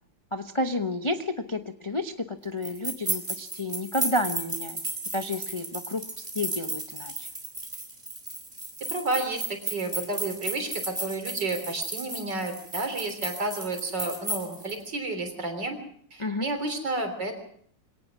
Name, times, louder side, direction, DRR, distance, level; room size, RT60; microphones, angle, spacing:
voice 1, 0.3-4.8 5.1-6.0 6.3-7.3 16.2-16.5, left 1 dB, 25° left, 6 dB, 0.6 m, -30 dB
sound 1, 2.6-14.7, right 1 dB, 20° right, 4.0 m, -34 dB
voice 2, 8.9-15.8 16.1-17.4, right 2 dB, 65° right, 6 dB, 4.2 m, -31 dB
24.0 x 18.0 x 6.1 m, 0.64 s
omnidirectional pair, 2.1 m